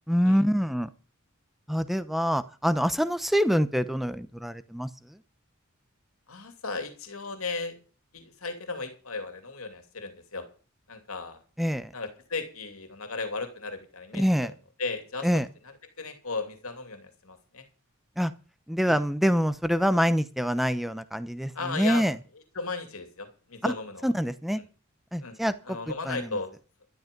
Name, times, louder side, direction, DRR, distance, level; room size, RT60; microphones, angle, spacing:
voice 1, 0.1-0.9 1.7-4.9 11.6-11.9 14.1-14.5 15.2-15.5 18.2-18.3 18.7-22.2 23.6-23.7 24.0-24.6 25.1-25.8 26.1-26.4, equal, ahead, 13 dB, 0.8 m, -25 dB
voice 2, 6.3-7.8 8.1-10.5 10.9-11.4 11.9-14.5 14.8-15.3 15.6-17.6 18.9-19.0 21.5-22.0 22.5-24.1 24.6-24.7 25.2-25.4 25.6-26.5, left 3 dB, 80° left, 7 dB, 2.7 m, -36 dB
12.5 x 12.0 x 5.3 m, 0.37 s
head